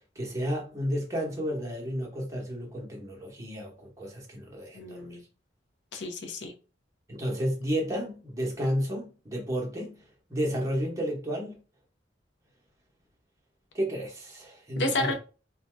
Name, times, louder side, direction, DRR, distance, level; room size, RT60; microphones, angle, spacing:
voice 1, 0.0-5.2 7.1-10.0 10.3-11.6 13.7-15.1, equal, 15° right, 0.9 m, -32 dB
voice 2, 4.7-5.2 5.9-6.5 14.8-15.1, left 2 dB, 70° left, 0.6 m, -31 dB
2.6 x 2.2 x 3.3 m
head